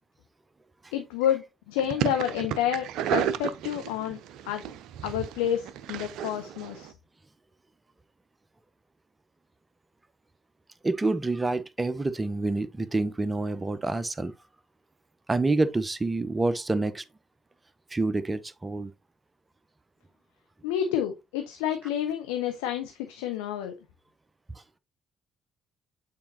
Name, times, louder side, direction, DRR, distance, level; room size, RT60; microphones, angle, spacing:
voice 1, 0.9-4.2 4.5-4.6 5.0-6.9 20.6-23.7, left 10 dB, 70° left, 0.7 m, -29 dB
sound 1, 1.8-6.9, right 10 dB, 60° right, 0.4 m, -33 dB
voice 2, 10.8-14.3 15.3-17.0 17.9-18.9, right 2 dB, 20° right, 0.7 m, -27 dB
8.7 x 4.5 x 2.7 m
figure-of-eight pair, 45°, 0 cm